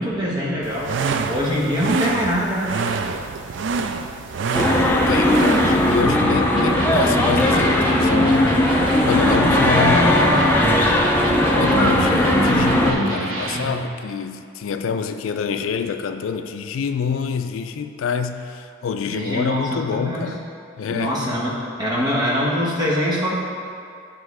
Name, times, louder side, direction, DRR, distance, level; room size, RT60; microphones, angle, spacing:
voice 1, 0.0-2.8 3.1-3.2 19.1-20.4 20.9-23.3, equal, 20° right, -5 dB, 1.2 m, -24 dB
Buzz-bone, 0.6-6.0, right 4 dB, 65° right, 0.4 m, -26 dB
sound 1, 4.5-12.9, left 1 dB, 10° left, 0.5 m, -18 dB
voice 2, 4.8-10.8 11.6-20.5 20.8-21.2, left 6 dB, 80° left, 8 dB, 0.4 m, -26 dB
Electric guitar, 6.5-13.8, right 1 dB, 85° right, 1.1 m, -26 dB
9.5 x 3.5 x 4.7 m, 2.4 s
head